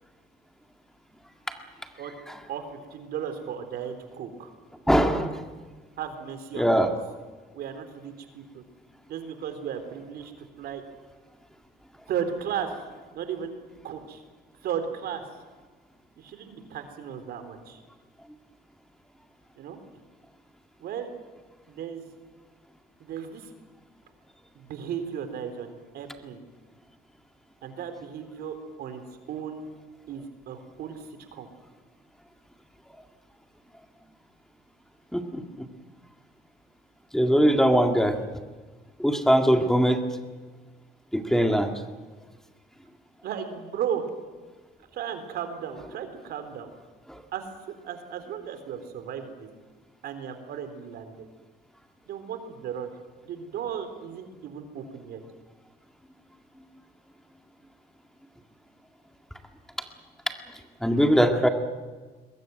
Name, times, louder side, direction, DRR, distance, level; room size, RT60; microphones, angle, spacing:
voice 1, 2.5-4.5 6.0-7.0 7.5-8.6 9.1-10.8 12.1-12.7 13.1-13.5 13.8-14.2 14.6-15.2 16.2-17.8 19.6-19.8 20.8-21.1 21.7-22.1 23.0-23.5 24.6-26.4 27.6-29.0 29.3-29.6 30.1-31.0 31.3-31.5 43.2-44.1 44.9-46.7 47.3-49.5 50.0-51.3 52.1-52.9 53.3-55.2, right 8 dB, 70° right, 8 dB, 3.7 m, -35 dB
voice 2, 4.9-5.4 6.6-6.9 35.1-35.7 37.1-38.2 39.0-40.0 41.1-41.7 47.1-47.2 60.8-61.5, equal, 5° left, 5 dB, 2.0 m, -21 dB
22.0 x 20.5 x 9.3 m, 1.4 s
cardioid pair, 110°, 17 cm